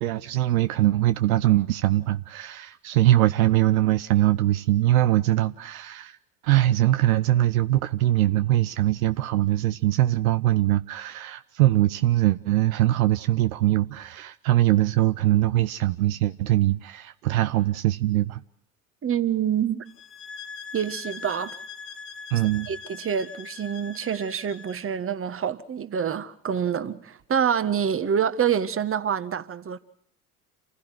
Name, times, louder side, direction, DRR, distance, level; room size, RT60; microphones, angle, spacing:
voice 1, 0.0-6.2 6.4-18.4 22.3-22.7, right 15 dB, 70° right, 0.9 m, -22 dB
voice 2, 19.0-19.8 20.7-21.5 22.7-29.8, right 8 dB, 30° right, 1.6 m, -26 dB
sound 1, 19.9-24.9, left 5 dB, 30° left, 1.8 m, -41 dB
28.5 x 15.5 x 7.6 m
figure-of-eight pair, 65°, 44 cm